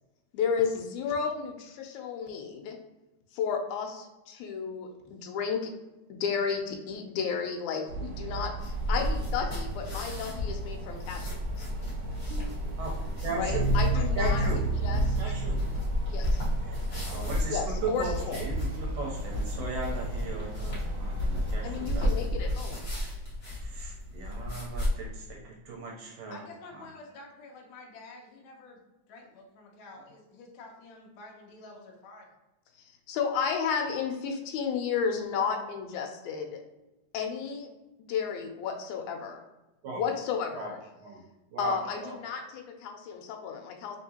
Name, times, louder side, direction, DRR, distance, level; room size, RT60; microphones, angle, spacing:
voice 1, 0.3-2.8 3.3-5.7 6.1-11.7 13.4-15.4 16.1-16.4 17.5-18.4 21.6-22.9 32.8-36.6 37.1-37.7 38.1-39.4 39.9-40.9 41.6-44.0, left 6 dB, 90° left, 3 dB, 2.0 m, -33 dB
sound 1, 7.9-22.1, right 2 dB, 55° right, 1.5 m, -40 dB
sound 2, 8.6-24.9, left 1 dB, 35° left, 1.0 m, -32 dB
sound 3, 12.3-16.4, right 3 dB, 90° right, 2.0 m, -31 dB
voice 2, 12.8-14.6 15.2-15.6 16.7-16.8 17.1-17.6 18.0-22.3 23.6-26.4 39.8-40.0 40.5-40.7 41.0-41.2 41.5-42.2, right 3 dB, 70° right, -2 dB, 1.6 m, -38 dB
voice 3, 26.3-28.8 29.1-32.3, left 2 dB, 75° left, 0 dB, 1.2 m, -49 dB
3.9 x 3.6 x 2.8 m, 1.0 s
omnidirectional pair, 3.3 m